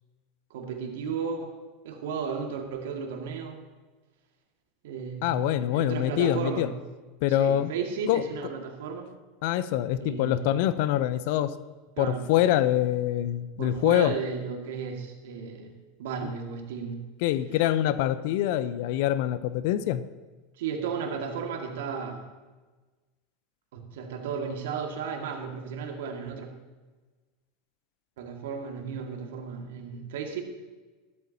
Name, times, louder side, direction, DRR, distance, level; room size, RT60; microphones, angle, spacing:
voice 1, 0.5-1.6 1.8-3.6 4.8-6.7 7.3-9.1 10.0-10.5 12.0-12.3 13.6-15.7 16.0-17.0 20.6-22.3 23.7-26.5 28.2-30.4, right 6 dB, 70° right, 3 dB, 1.9 m, -34 dB
voice 2, 5.2-6.7 7.2-7.7 8.1-8.2 9.4-11.5 12.0-14.1 17.2-20.0, left 12 dB, 65° left, 14 dB, 0.6 m, -25 dB
14.5 x 13.0 x 2.8 m, 1.3 s
hypercardioid pair, 90°, 0 cm